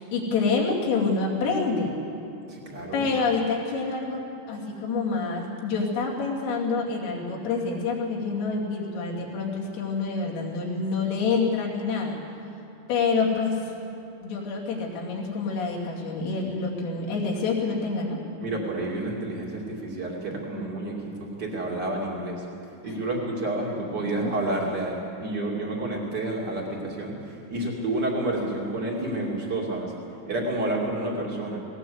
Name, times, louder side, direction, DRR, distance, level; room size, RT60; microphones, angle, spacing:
voice 1, 0.0-2.0 2.9-4.2 4.5-12.2 12.9-13.7 14.2-18.2 22.9-23.0 24.0-24.4, left 4 dB, 80° left, -3 dB, 5.4 m, -27 dB
voice 2, 2.5-3.1 18.4-31.6, right 2 dB, 40° right, -1 dB, 1.6 m, -30 dB
18.5 x 18.5 x 7.8 m, 2.6 s
omnidirectional pair, 5.8 m